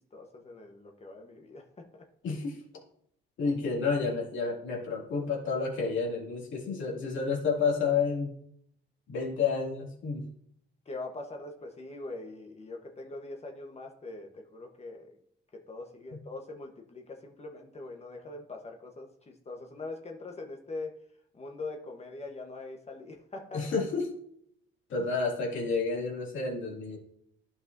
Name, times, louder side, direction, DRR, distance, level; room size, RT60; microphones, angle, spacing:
voice 1, 0.1-1.8 10.9-15.1 15.5-21.0 21.3-23.8, left 2 dB, 30° left, 2 dB, 1.1 m, -42 dB
voice 2, 2.2-2.6 3.4-8.3 9.1-10.2 23.5-24.1 24.9-27.0, left 4 dB, 75° left, -2 dB, 2.4 m, -30 dB
11.5 x 5.7 x 2.7 m, 0.69 s
cardioid pair, 90°, 20 cm